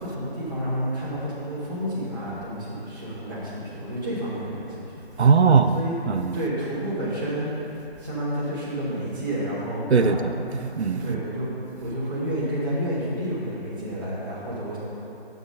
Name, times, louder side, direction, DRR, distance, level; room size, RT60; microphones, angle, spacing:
voice 1, 0.0-5.3 5.7-6.0 6.3-7.5 8.0-10.3 11.0-11.5 11.8-14.8, equal, 20° right, -11 dB, 1.2 m, -30 dB
voice 2, 5.2-5.8 6.1-6.3 9.9-11.2, right 5 dB, 90° right, 8 dB, 0.6 m, -20 dB
7.1 x 6.0 x 5.2 m, 2.9 s
figure-of-eight pair, 165°, 32 cm